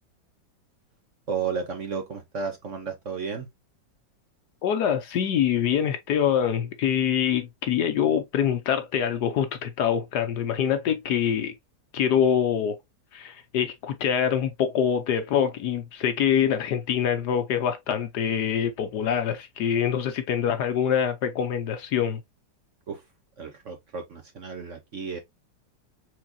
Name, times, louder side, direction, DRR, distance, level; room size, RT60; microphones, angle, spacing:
voice 1, 1.3-3.5 22.9-23.0 23.4-25.2, right 5 dB, 50° right, 1.0 m, -33 dB
voice 2, 4.6-11.5 11.9-12.8 13.1-22.2, left 8 dB, 65° left, 1.2 m, -25 dB
4.6 x 4.1 x 2.7 m
omnidirectional pair, 2.0 m